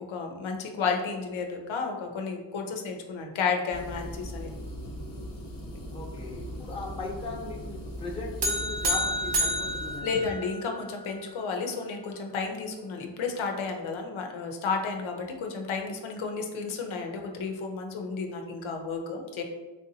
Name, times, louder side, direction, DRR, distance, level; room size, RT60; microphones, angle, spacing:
voice 1, 0.0-4.5 10.0-19.4, left 5 dB, 85° left, 3 dB, 0.6 m, -32 dB
sound 1, 3.7-10.0, equal, 45° left, 0.7 m, -39 dB
voice 2, 5.9-10.3, left 3 dB, 10° left, -3 dB, 0.7 m, -38 dB
sound 2, 8.4-10.9, equal, 60° right, 0.7 m, -29 dB
3.5 x 2.6 x 2.6 m, 1.2 s
cardioid pair, 75°, 46 cm